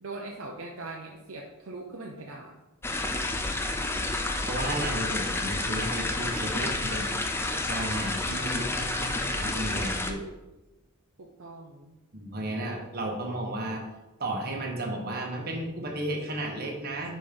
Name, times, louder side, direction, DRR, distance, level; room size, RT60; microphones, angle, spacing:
voice 1, 0.0-2.6 11.2-11.9, right 2 dB, 65° right, 0 dB, 0.7 m, -41 dB
sound 1, 2.8-10.1, left 2 dB, 10° left, 0.4 m, -30 dB
voice 2, 4.4-7.3 7.7-10.3 12.1-13.8 14.2-17.1, right 1 dB, 45° right, 0 dB, 1.2 m, -33 dB
5.3 x 4.2 x 5.1 m, 1.1 s
head